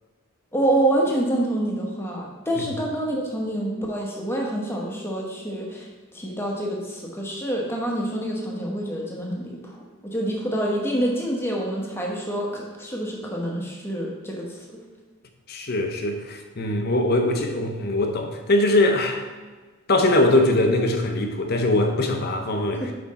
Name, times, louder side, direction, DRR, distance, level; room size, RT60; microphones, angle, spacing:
voice 1, 0.5-9.8 10.0-14.6 22.7-22.9, right 1 dB, 10° left, -1 dB, 1.1 m, -27 dB
voice 2, 15.5-19.3 19.9-22.9, left 1 dB, 45° left, 5 dB, 0.7 m, -22 dB
5.7 x 5.2 x 4.2 m, 1.3 s
head